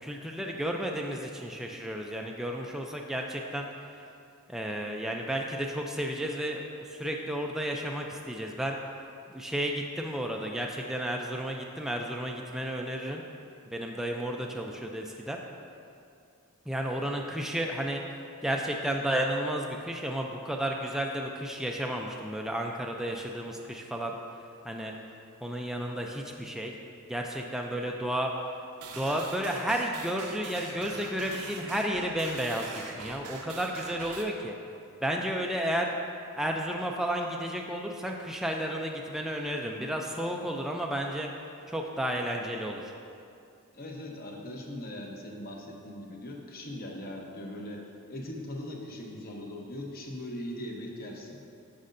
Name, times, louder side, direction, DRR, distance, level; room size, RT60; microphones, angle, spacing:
voice 1, 0.0-4.1 4.5-8.8 9.3-13.2 13.7-15.4 16.7-18.0 18.4-24.1 24.6-24.9 25.4-26.7 27.1-28.3 28.9-34.5 35.0-36.0 36.4-41.3 41.7-42.9, equal, ahead, 0 dB, 0.3 m, -32 dB
sound 1, 28.8-34.2, right 4 dB, 90° right, 0.8 m, -43 dB
voice 2, 43.7-47.8 48.1-51.4, left 1 dB, 45° left, 0 dB, 0.9 m, -40 dB
9.4 x 6.4 x 2.6 m, 2.5 s
head